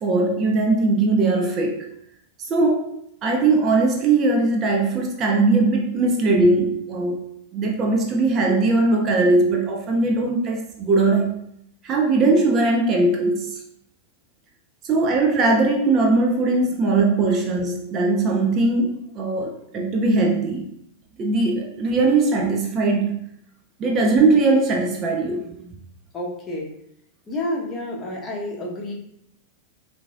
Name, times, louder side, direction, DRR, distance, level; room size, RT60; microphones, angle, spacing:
voice 1, 0.0-1.9 2.4-7.3 7.5-11.3 11.8-13.6 14.8-20.7 21.2-23.2 23.8-25.5, right 3 dB, 30° right, 2 dB, 0.5 m, -20 dB
voice 2, 26.1-26.8 27.3-28.9, left 1 dB, 20° left, -2 dB, 1.0 m, -29 dB
5.8 x 2.6 x 2.3 m, 0.74 s
figure-of-eight pair, 90°, 0 cm